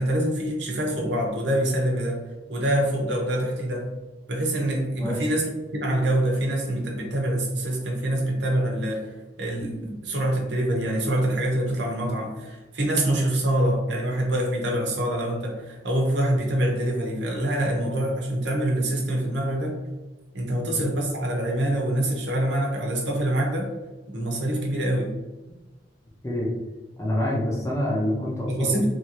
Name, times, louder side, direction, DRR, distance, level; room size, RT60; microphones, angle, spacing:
voice 1, 0.0-2.2 2.5-3.9 4.3-5.4 5.7-9.1 9.4-19.8 20.3-23.7 24.1-25.1 28.5-28.9, right 1 dB, 90° right, 0 dB, 0.9 m, -25 dB
voice 2, 27.0-28.8, left 1 dB, 15° left, -5 dB, 0.7 m, -26 dB
3.1 x 2.7 x 2.8 m, 1.1 s
head